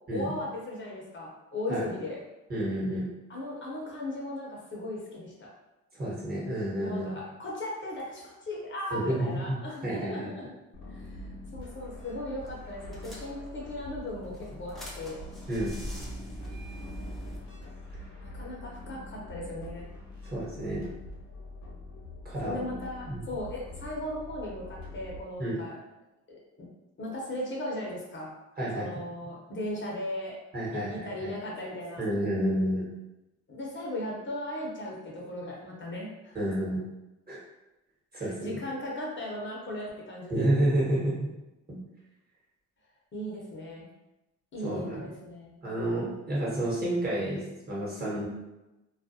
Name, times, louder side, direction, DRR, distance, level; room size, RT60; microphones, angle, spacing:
voice 1, 0.1-2.2 3.3-5.5 6.8-10.5 10.9-15.2 18.2-19.9 22.4-25.8 26.3-26.4 27.0-28.3 28.7-30.4 30.7-32.0 33.5-36.4 38.1-40.5 43.1-43.9 44.5-45.5, left 1 dB, 40° left, -3 dB, 0.7 m, -37 dB
voice 2, 2.5-3.0 5.9-7.2 8.9-9.6 9.8-10.3 15.5-15.7 20.2-20.9 22.2-22.8 23.1-23.2 25.4-25.6 28.6-28.9 30.5-31.3 32.0-32.9 36.3-36.8 37.3-37.4 38.1-38.6 40.3-41.1 41.7-41.8 44.6-45.1 45.6-48.3, right 1 dB, 30° right, -6 dB, 1.1 m, -30 dB
sound 1, 10.7-25.2, left 1 dB, 75° left, 0.8 m, -44 dB
sound 2, 12.0-12.2 12.5-12.6 12.9-13.7 14.2-17.4, right 1 dB, ahead, 0.6 m, -41 dB
2.3 x 2.1 x 2.6 m, 1.0 s
cardioid pair, 90°, 30 cm